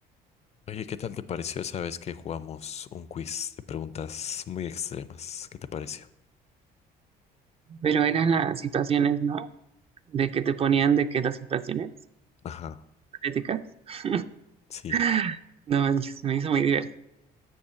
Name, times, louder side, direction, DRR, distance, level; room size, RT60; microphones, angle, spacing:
voice 1, 0.7-6.1 12.4-12.8 14.7-15.0, left 8 dB, 40° left, 16 dB, 0.4 m, -35 dB
voice 2, 7.7-9.5 10.1-11.9 13.2-13.6 13.9-14.2 14.9-15.4 15.7-17.0, right 7 dB, 35° right, 11 dB, 0.4 m, -25 dB
6.8 x 5.5 x 6.8 m, 0.88 s
cardioid pair, 110°, 17 cm